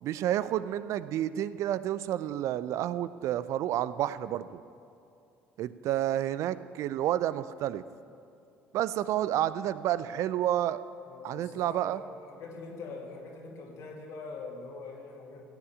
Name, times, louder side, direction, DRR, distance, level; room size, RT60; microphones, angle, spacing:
voice 1, 0.0-4.6 5.6-7.8 8.7-10.8 11.2-12.0, right 12 dB, 55° right, 16 dB, 0.5 m, -30 dB
voice 2, 11.1-15.4, left 3 dB, 60° left, 0 dB, 2.3 m, -43 dB
15.5 x 7.0 x 8.7 m, 2.7 s
figure-of-eight pair, 55°, 6 cm